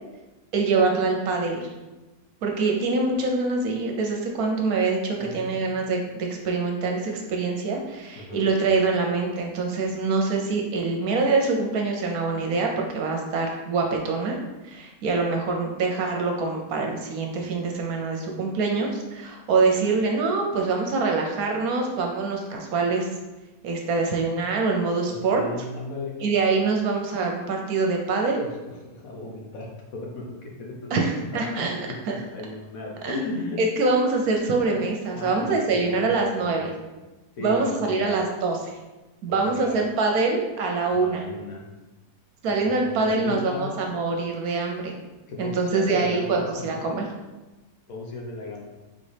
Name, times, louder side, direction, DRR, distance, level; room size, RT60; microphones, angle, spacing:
voice 1, 0.5-1.7 2.4-14.4 14.6-23.1 23.6-25.4 26.2-28.4 30.9-31.8 32.1-32.2 33.0-33.1 33.6-36.7 37.4-38.7 39.2-41.2 42.4-45.0 45.4-47.1, right 3 dB, 70° right, 2 dB, 1.0 m, -24 dB
voice 2, 5.2-5.7 8.1-8.4 25.1-26.2 28.4-33.6 35.1-36.9 37.3-38.2 39.3-39.8 40.9-41.7 42.4-43.8 45.3-46.9 47.9-48.7, left 2 dB, 60° left, -1 dB, 1.2 m, -36 dB
4.1 x 3.7 x 3.3 m, 1.1 s
omnidirectional pair, 1.8 m